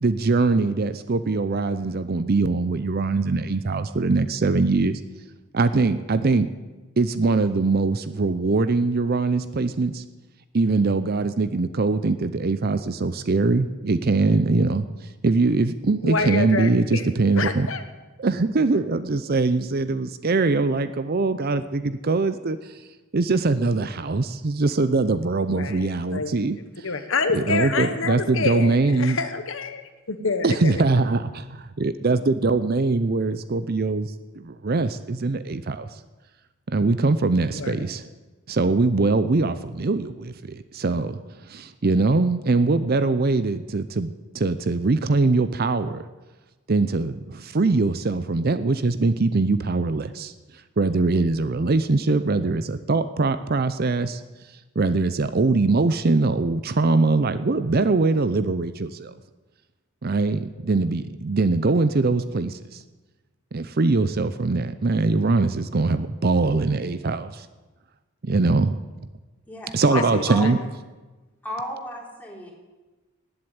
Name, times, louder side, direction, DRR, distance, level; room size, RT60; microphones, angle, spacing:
voice 1, 0.0-5.0 5.5-6.5 7.0-10.1 10.5-14.9 15.2-17.7 18.2-22.8 23.1-26.9 27.3-29.2 30.4-36.0 36.7-38.1 38.5-41.2 41.5-46.0 46.7-50.3 50.8-54.2 54.8-59.1 60.0-62.8 63.5-67.5 68.2-68.7 69.7-70.6, right 3 dB, 45° right, 12 dB, 0.6 m, -22 dB
voice 2, 16.0-17.0 17.3-17.8 25.5-26.3 26.8-30.8 37.5-37.7 69.9-70.7, left 4 dB, 65° left, 8 dB, 1.1 m, -27 dB
voice 3, 69.5-70.0 70.3-70.5 71.4-72.5, equal, 5° left, -2 dB, 3.3 m, -33 dB
19.0 x 7.8 x 8.9 m, 1.2 s
head